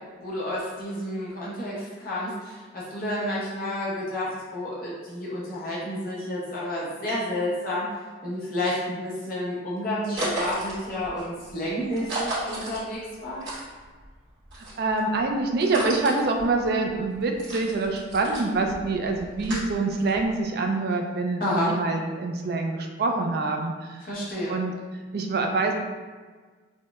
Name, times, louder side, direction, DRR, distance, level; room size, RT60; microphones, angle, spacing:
voice 1, 0.2-7.9 8.2-13.4 21.4-21.7 24.0-24.6, left 1 dB, 50° left, -7 dB, 0.8 m, -30 dB
sound 1, 10.1-14.1 14.4-20.4, right 1 dB, 80° right, 1.4 m, -34 dB
voice 2, 14.6-24.1 24.5-24.7 25.1-25.7, right 3 dB, 55° right, 3 dB, 0.4 m, -26 dB
4.3 x 2.1 x 2.3 m, 1.4 s
head